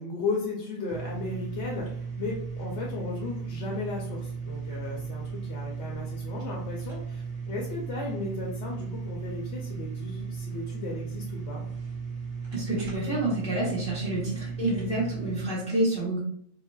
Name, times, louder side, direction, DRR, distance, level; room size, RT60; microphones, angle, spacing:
voice 1, 0.0-11.6, left 3 dB, 65° left, -2 dB, 0.8 m, -35 dB
sound 1, 0.9-15.5, right 5 dB, 45° right, 0.3 m, -36 dB
voice 2, 12.5-16.2, right 1 dB, 5° left, -5 dB, 0.7 m, -28 dB
3.1 x 2.1 x 2.2 m, 0.65 s
omnidirectional pair, 1.4 m